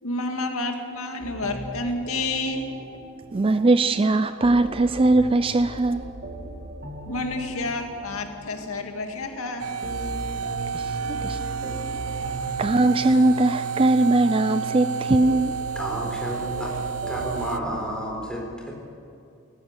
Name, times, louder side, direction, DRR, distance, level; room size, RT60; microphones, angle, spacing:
voice 1, 0.0-2.7 7.0-9.6, left 2 dB, 75° left, 4 dB, 2.1 m, -29 dB
On hold, 1.2-18.2, right 1 dB, 45° right, 2.5 m, -39 dB
voice 2, 3.3-6.0 10.7-11.9 12.6-15.5, right 2 dB, 25° right, 12 dB, 0.4 m, -21 dB
sound 1, 9.6-17.6, right 5 dB, 90° right, 0.7 m, -30 dB
voice 3, 15.8-16.8 17.1-18.7, equal, 5° left, -1 dB, 4.3 m, -31 dB
19.0 x 15.0 x 9.7 m, 2.4 s
head